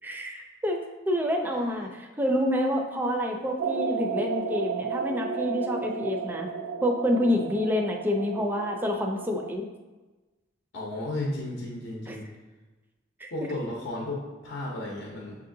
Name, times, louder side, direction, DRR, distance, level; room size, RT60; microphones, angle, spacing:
voice 1, 0.0-6.5 6.8-9.6 12.1-12.2 13.2-13.3, left 1 dB, 10° right, 2 dB, 0.4 m, -28 dB
sound 1, 3.6-9.6, right 5 dB, 75° right, 0.3 m, -33 dB
voice 2, 10.7-12.3 13.3-15.4, left 1 dB, 65° left, -3 dB, 0.7 m, -33 dB
7.0 x 2.7 x 2.6 m, 1.2 s
head